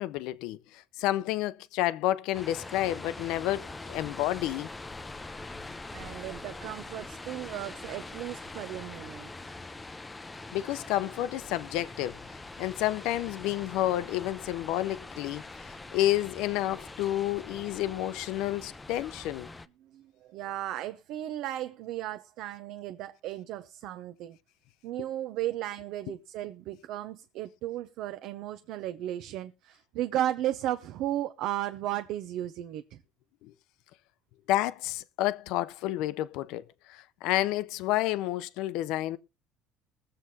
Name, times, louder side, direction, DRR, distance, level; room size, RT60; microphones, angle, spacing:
voice 1, 0.0-4.7 10.5-12.2 12.6-19.5 26.1-26.2 33.4-33.5 34.5-39.2, left 14 dB, 75° left, 0.6 m, -30 dB
sound 1, 2.3-19.7, left 2 dB, 10° left, 0.5 m, -43 dB
voice 2, 5.9-9.3 19.8-24.4 24.8-33.0, right 13 dB, 65° right, 0.6 m, -35 dB
21.5 x 7.7 x 2.8 m
cardioid pair, 150°, 0 cm